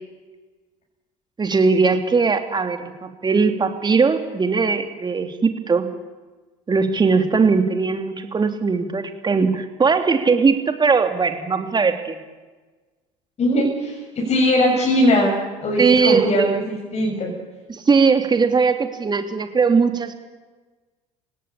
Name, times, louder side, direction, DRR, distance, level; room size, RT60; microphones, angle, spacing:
voice 1, 1.4-5.9 6.7-12.2 15.8-16.5 17.7-20.1, right 4 dB, 25° right, 7 dB, 3.1 m, -19 dB
voice 2, 13.4-15.3 15.6-17.3, equal, 40° left, -1 dB, 7.3 m, -20 dB
29.0 x 17.5 x 8.6 m, 1.3 s
figure-of-eight pair, 60°, 17 cm